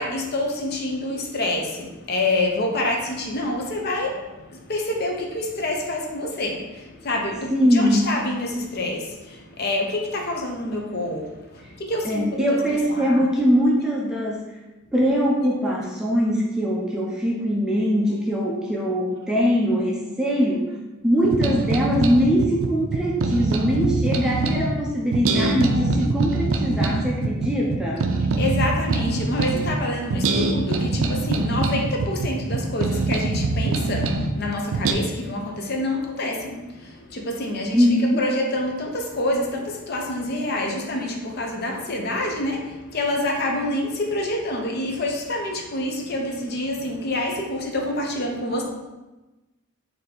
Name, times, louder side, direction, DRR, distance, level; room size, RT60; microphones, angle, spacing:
voice 1, 0.0-13.2 28.4-37.9 38.2-48.6, left 1 dB, 50° left, 1 dB, 0.6 m, -27 dB
voice 2, 7.5-8.1 12.0-14.4 14.9-20.7 21.0-28.1 37.7-38.2, equal, 5° right, -4 dB, 0.4 m, -22 dB
sound 1, 21.2-24.7 25.1-29.8 30.1-34.3 34.7-34.9, right 3 dB, 75° right, 0.4 m, -23 dB
3.8 x 2.7 x 4.1 m, 1.1 s
head